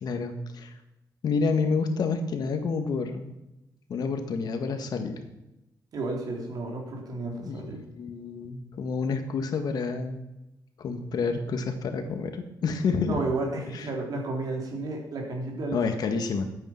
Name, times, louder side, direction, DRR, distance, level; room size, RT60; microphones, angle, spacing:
voice 1, 0.0-0.7 1.2-3.4 3.9-5.3 7.4-7.7 8.0-10.2 10.8-13.2 13.7-13.9 15.7-16.4, left 4 dB, 65° left, 6 dB, 1.8 m, -29 dB
voice 2, 5.9-7.8 13.1-15.8, right 2 dB, 60° right, 1 dB, 3.7 m, -32 dB
13.0 x 8.9 x 5.9 m, 0.93 s
cardioid pair, 125°, 7 cm